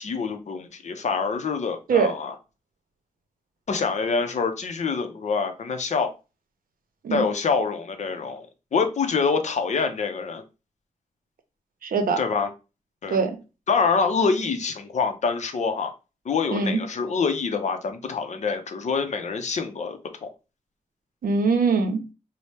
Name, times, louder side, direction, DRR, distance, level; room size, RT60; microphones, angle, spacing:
voice 1, 0.0-2.4 3.7-6.1 7.1-8.5 8.7-10.4 12.2-12.5 13.0-13.2 13.7-15.9 16.2-20.3, left 5 dB, 55° left, 0.5 m, -26 dB
voice 2, 11.8-12.2 13.1-13.4 16.5-16.8 21.2-22.0, right 5 dB, 90° right, 0.6 m, -22 dB
4.2 x 2.0 x 3.2 m
wide cardioid pair, 175°, 14 cm